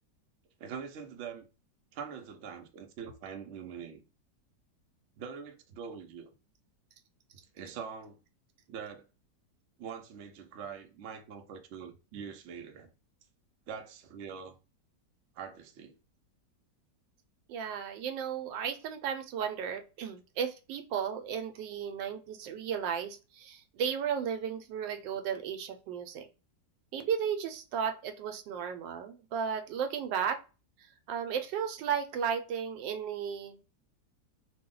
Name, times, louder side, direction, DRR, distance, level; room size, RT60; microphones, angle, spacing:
voice 1, 0.6-1.5 1.9-4.0 5.2-6.3 7.5-8.2 8.7-9.1 9.8-12.9 13.7-14.6 15.3-15.9, right 7 dB, 70° right, 0.6 m, -43 dB
voice 2, 17.5-26.3 26.9-30.4 31.1-33.6, right 7 dB, 90° right, 1.3 m, -34 dB
2.9 x 2.1 x 3.7 m
omnidirectional pair, 1.9 m